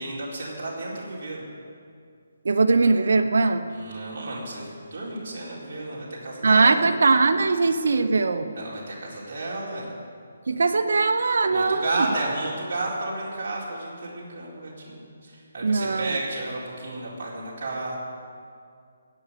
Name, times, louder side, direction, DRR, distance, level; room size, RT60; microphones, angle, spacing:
voice 1, 0.0-1.4 3.7-6.8 8.5-9.9 11.4-18.0, right 2 dB, 50° right, -6 dB, 4.5 m, -32 dB
voice 2, 2.4-3.6 6.4-8.5 10.5-11.9 15.6-16.2, right 3 dB, 70° right, 9 dB, 1.0 m, -20 dB
17.0 x 6.4 x 9.9 m, 2.3 s
hypercardioid pair, 165°, 0 cm